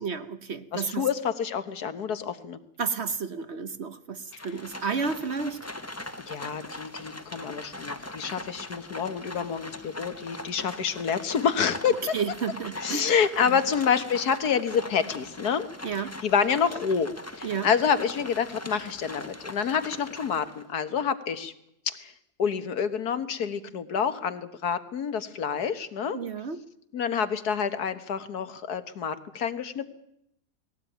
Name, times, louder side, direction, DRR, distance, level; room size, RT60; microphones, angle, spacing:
voice 1, 0.0-1.1 2.8-5.6 12.1-13.1 13.4-13.6 15.8-16.2 17.4-17.7 26.1-26.6, right 5 dB, 50° right, 12 dB, 1.1 m, -31 dB
voice 2, 0.7-2.6 4.3-4.5 6.3-12.1 12.8-15.7 16.2-17.1 17.4-21.5 21.9-22.1 22.4-26.2 26.9-29.9, left 7 dB, 75° left, 11 dB, 1.8 m, -28 dB
Livestock farm animals working animals, 4.3-20.7, left 1 dB, 10° left, 1.0 m, -41 dB
20.0 x 16.5 x 9.2 m, 0.78 s
omnidirectional pair, 1.7 m